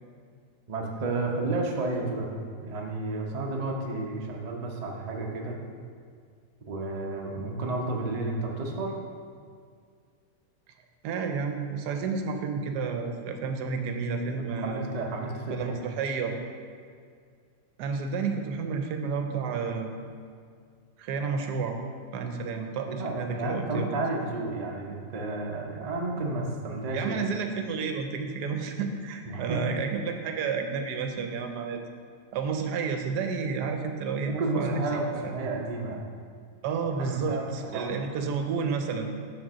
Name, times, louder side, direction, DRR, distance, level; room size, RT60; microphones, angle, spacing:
voice 1, 0.7-2.3 2.6-5.5 6.6-8.9 14.3-15.8 22.9-27.2 29.3-29.8 34.3-36.0 37.0-38.1, right 2 dB, 45° right, 0 dB, 0.5 m, -32 dB
voice 2, 11.0-14.8 15.5-16.3 17.8-19.9 21.0-21.8 22.1-24.0 26.9-31.8 32.3-34.8 36.6-39.1, right 5 dB, 80° right, 5 dB, 1.2 m, -31 dB
6.5 x 3.8 x 6.1 m, 2.1 s
omnidirectional pair, 1.8 m